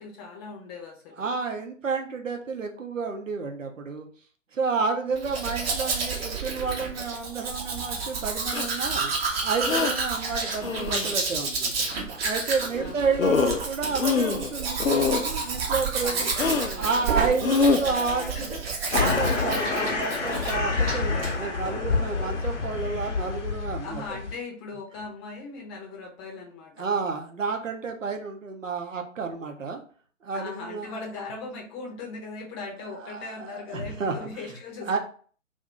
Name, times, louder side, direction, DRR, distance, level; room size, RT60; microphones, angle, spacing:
voice 1, 0.0-1.2 12.7-13.1 16.0-18.6 23.8-26.9 30.3-35.0, left 4 dB, 20° left, -1 dB, 0.7 m, -39 dB
voice 2, 1.2-4.1 4.5-9.1 9.4-11.9 12.2-16.3 16.7-18.6 18.9-24.2 26.8-29.8 30.2-31.0 33.0-34.1 34.9-35.0, right 4 dB, 75° right, 4 dB, 0.8 m, -30 dB
Domestic sounds home sounds, 5.2-20.6 20.9-21.3, right 4 dB, 50° right, 0.9 m, -30 dB
sound 1, 8.5-8.7 9.6-9.9 10.6-11.1 12.8-12.9 13.2-13.6 14.0-14.5 14.8-15.2 16.4-16.7 17.4-17.8, left 5 dB, 90° left, 0.5 m, -24 dB
sound 2, 18.9-24.3, left 4 dB, 65° left, 0.9 m, -27 dB
2.6 x 2.6 x 3.4 m, 0.43 s
figure-of-eight pair, 120°, 39 cm